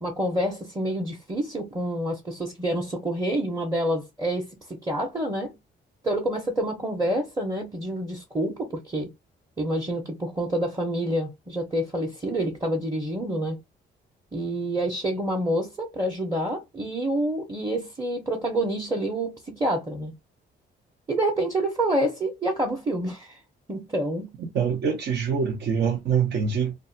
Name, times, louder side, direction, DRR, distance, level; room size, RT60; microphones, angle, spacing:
voice 1, 0.0-5.6 6.0-9.1 9.6-13.6 14.3-20.1 21.1-23.4 23.7-24.4, right 1 dB, 15° right, 0.9 m, -27 dB
voice 2, 24.5-26.8, right 6 dB, 60° right, 0.8 m, -24 dB
2.6 x 2.3 x 2.6 m
cardioid pair, 90°, 20 cm